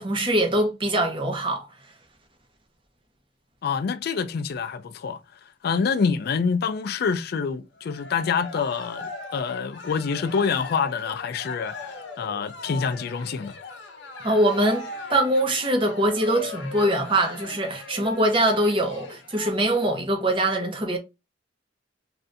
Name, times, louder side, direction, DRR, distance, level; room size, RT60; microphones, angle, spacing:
voice 1, 0.0-1.7 14.2-21.0, right 1 dB, 30° right, 0.9 m, -23 dB
voice 2, 3.6-5.2 5.6-13.6, left 5 dB, 55° left, 0.3 m, -26 dB
Cheering, 7.7-19.5, left 3 dB, 80° left, 0.9 m, -39 dB
3.2 x 2.6 x 2.5 m
head